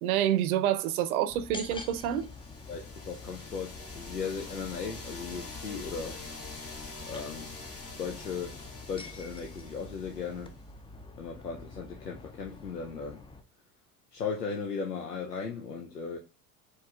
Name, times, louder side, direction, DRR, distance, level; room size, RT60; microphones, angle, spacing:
voice 1, 0.0-2.3, right 11 dB, 65° right, 0.7 m, -27 dB
sound 1, 1.3-13.4, left 3 dB, 10° left, 0.5 m, -47 dB
sound 2, 1.9-10.6, left 3 dB, 30° left, 1.6 m, -45 dB
voice 2, 2.7-6.2 7.1-7.5 8.0-10.5 11.2-13.2 14.1-16.2, left 5 dB, 90° left, 0.7 m, -37 dB
4.5 x 3.1 x 3.4 m
figure-of-eight pair, 60°, 47 cm